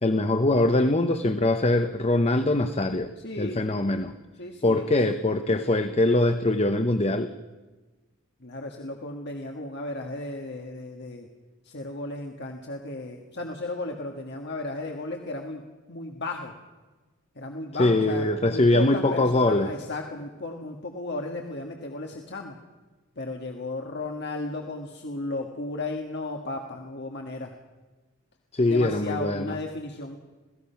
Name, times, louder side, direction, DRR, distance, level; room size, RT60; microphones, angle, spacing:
voice 1, 0.0-3.1 3.4-4.1 4.6-7.3 17.8-19.7 28.5-29.5, left 2 dB, 30° left, 9 dB, 0.7 m, -22 dB
voice 2, 3.2-3.6 4.4-5.2 8.4-11.3 11.6-15.6 15.9-16.5 17.3-22.6 23.1-27.5 28.6-30.2, left 2 dB, 50° left, 2 dB, 1.6 m, -34 dB
27.0 x 17.5 x 5.8 m, 1.2 s
head